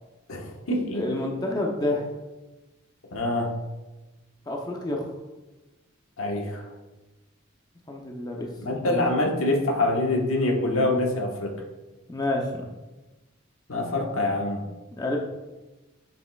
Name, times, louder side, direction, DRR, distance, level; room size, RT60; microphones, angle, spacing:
voice 1, 0.3-1.2 3.1-3.5 6.2-6.7 8.6-11.5 13.7-14.6, left 2 dB, 75° left, 0 dB, 1.3 m, -25 dB
voice 2, 0.9-2.1 4.5-5.1 7.9-8.5 8.8-9.0 12.1-12.7 15.0-15.2, left 1 dB, 20° left, 0 dB, 0.6 m, -29 dB
7.5 x 6.4 x 2.4 m, 1.1 s
head